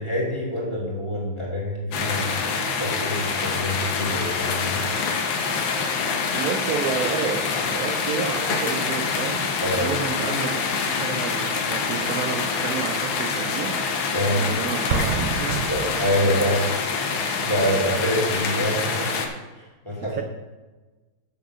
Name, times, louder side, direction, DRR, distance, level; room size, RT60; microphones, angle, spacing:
voice 1, 0.0-2.5 2.8-4.8 9.6-9.9 14.1-14.4 15.7-16.7 17.4-19.1 19.6-20.2, equal, 15° left, -4 dB, 2.4 m, -26 dB
sound 1, 1.9-19.3, left 5 dB, 70° left, 1.7 m, -26 dB
voice 2, 6.3-13.8 14.3-15.7 20.0-20.2, right 6 dB, 70° right, 6 dB, 0.8 m, -31 dB
Explosion, 14.9-16.7, right 5 dB, 90° right, 1.6 m, -28 dB
7.2 x 7.1 x 6.0 m, 1.2 s
omnidirectional pair, 2.2 m